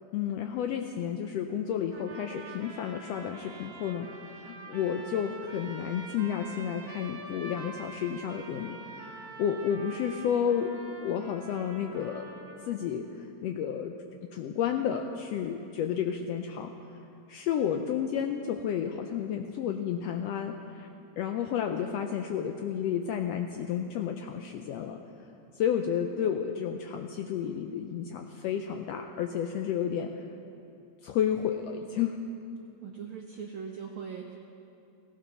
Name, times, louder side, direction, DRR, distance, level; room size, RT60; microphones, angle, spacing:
voice 1, 0.1-12.3 12.7-13.9 14.2-16.7 17.3-20.9 21.2-25.0 25.5-30.1 31.0-32.2, left 8 dB, 80° left, 4 dB, 1.5 m, -31 dB
sound 1, 1.9-12.9, right 3 dB, 45° right, 1.2 m, -46 dB
voice 2, 32.8-34.4, right 6 dB, 70° right, 2 dB, 1.3 m, -40 dB
17.5 x 16.0 x 4.0 m, 2.7 s
omnidirectional pair, 3.3 m